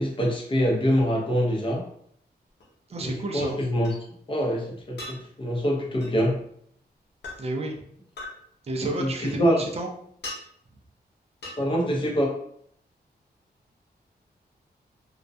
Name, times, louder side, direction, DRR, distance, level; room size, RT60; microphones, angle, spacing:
voice 1, 0.0-1.8 3.0-3.9 4.3-6.4 8.8-9.6 11.6-12.3, equal, 30° left, -2 dB, 0.6 m, -25 dB
sound 1, 2.6-2.7 3.8-3.9 5.0-5.2 6.0-6.2 7.2-7.4 8.2-8.3 9.3-9.7 10.2-10.4 11.4-11.6, left 2 dB, 90° left, 0.7 m, -38 dB
voice 2, 2.9-3.6 7.4-7.9 8.6-9.9, right 2 dB, 35° right, 2 dB, 0.4 m, -31 dB
2.3 x 2.1 x 2.6 m, 0.67 s
wide cardioid pair, 130°, 17 cm